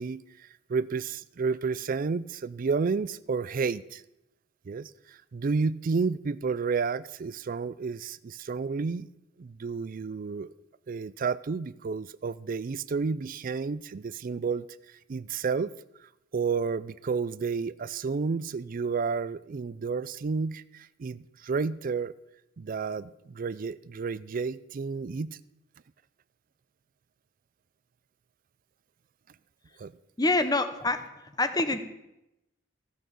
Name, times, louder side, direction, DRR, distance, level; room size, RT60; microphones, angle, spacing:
voice 1, 0.0-4.0 4.7-9.1 9.4-10.5 10.9-14.7 15.1-15.7 16.3-22.1 22.6-25.4 29.8-29.9, right 5 dB, 45° right, 18 dB, 0.4 m, -31 dB
voice 2, 30.2-31.1 31.4-31.8, left 2 dB, 20° left, 10 dB, 0.9 m, -25 dB
15.5 x 6.2 x 6.9 m, 0.90 s
head